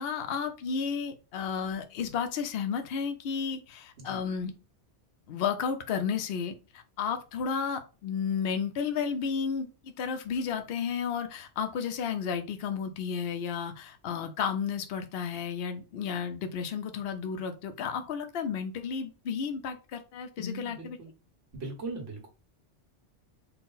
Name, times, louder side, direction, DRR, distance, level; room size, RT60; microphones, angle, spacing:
voice 1, 0.0-4.5 5.3-21.0, left 6 dB, 60° left, 0.8 m, -32 dB
voice 2, 20.4-21.1 21.5-22.3, right 2 dB, 90° right, 1.5 m, -39 dB
4.4 x 2.0 x 3.9 m
omnidirectional pair, 1.2 m